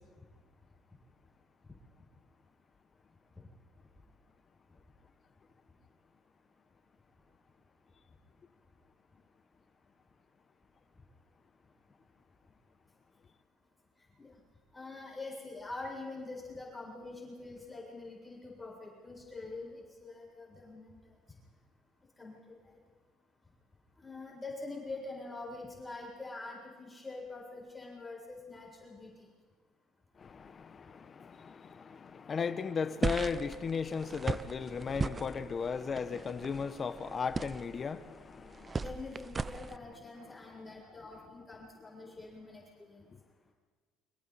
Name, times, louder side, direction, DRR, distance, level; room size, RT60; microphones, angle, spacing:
voice 1, 14.7-21.0 22.2-22.6 24.0-29.3 38.8-43.1, left 3 dB, 15° left, 7.4 m, -45 dB
voice 2, 30.2-38.8, left 5 dB, 40° left, 1.2 m, -36 dB
sound 1, 33.0-39.8, right 4 dB, 30° right, 0.7 m, -38 dB
29.0 x 26.0 x 4.3 m
supercardioid pair, 75°, 0 cm